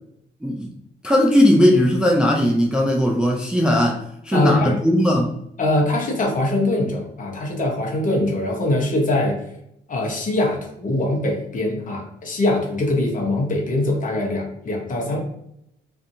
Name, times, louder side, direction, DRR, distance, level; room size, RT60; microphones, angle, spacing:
voice 1, 0.4-0.7 1.0-5.3, left 1 dB, 5° right, 0 dB, 0.3 m, -18 dB
voice 2, 4.3-4.8 5.6-9.4 9.9-15.2, left 2 dB, 40° left, 0 dB, 0.9 m, -22 dB
2.5 x 2.5 x 2.6 m, 0.75 s
cardioid pair, 90°, 20 cm